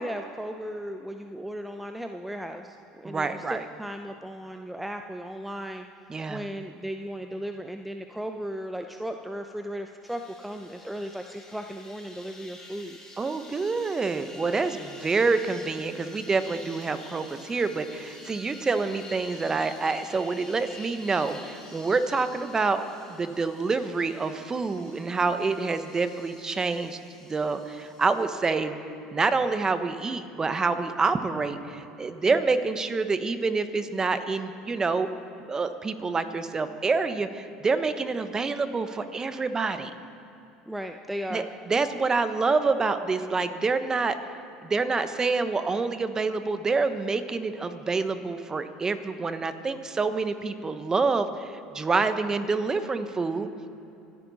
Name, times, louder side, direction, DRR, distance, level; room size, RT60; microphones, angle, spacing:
voice 1, 0.0-5.9 6.3-13.0 32.3-32.5 40.7-41.5, equal, 5° right, 6 dB, 0.6 m, -36 dB
voice 2, 3.0-3.6 6.1-6.4 13.2-27.0 27.3-28.8 29.1-35.1 35.5-39.9 41.3-44.2 44.6-53.5, right 4 dB, 25° right, 10 dB, 1.1 m, -27 dB
sound 1, 10.0-28.3, left 2 dB, 25° left, 4.2 m, -48 dB
26.0 x 9.7 x 4.2 m, 2.8 s
hypercardioid pair, 75°, 3 cm